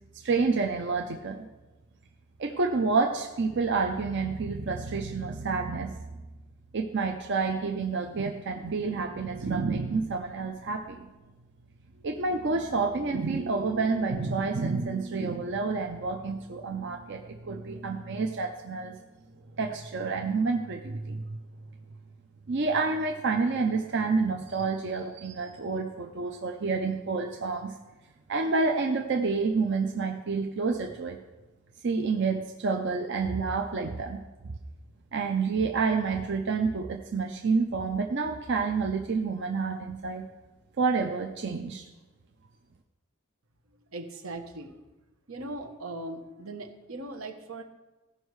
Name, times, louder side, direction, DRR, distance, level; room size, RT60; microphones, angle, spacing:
voice 1, 0.2-1.5 2.4-5.9 6.7-11.1 12.0-18.9 19.6-21.4 22.5-27.7 28.3-31.2 31.8-34.5 35.1-40.2 40.8-41.8, right 4 dB, 60° right, 3 dB, 0.6 m, -29 dB
voice 2, 43.9-44.7 45.3-47.6, right 2 dB, 85° right, 5 dB, 1.1 m, -39 dB
15.0 x 5.4 x 4.7 m, 1.1 s
head